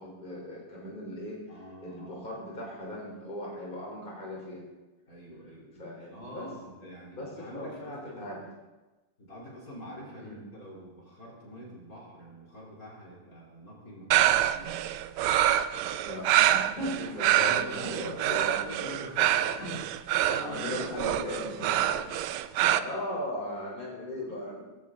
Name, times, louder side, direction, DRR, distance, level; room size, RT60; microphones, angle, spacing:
voice 1, 0.0-1.4 1.8-4.6 5.8-6.5 7.2-8.4 10.2-10.4 16.0-19.3 19.5-19.8 20.2-22.0 22.7-24.6, left 1 dB, 25° left, -3 dB, 3.8 m, -38 dB
voice 2, 1.5-2.3 5.1-8.4 9.2-14.9 17.3-19.7 20.0-21.7 24.3-24.4, equal, 45° left, -4 dB, 4.1 m, -45 dB
sound 1, 14.1-22.8, right 12 dB, 85° right, 1.5 m, -26 dB
18.5 x 16.0 x 3.8 m, 1.1 s
omnidirectional pair, 2.3 m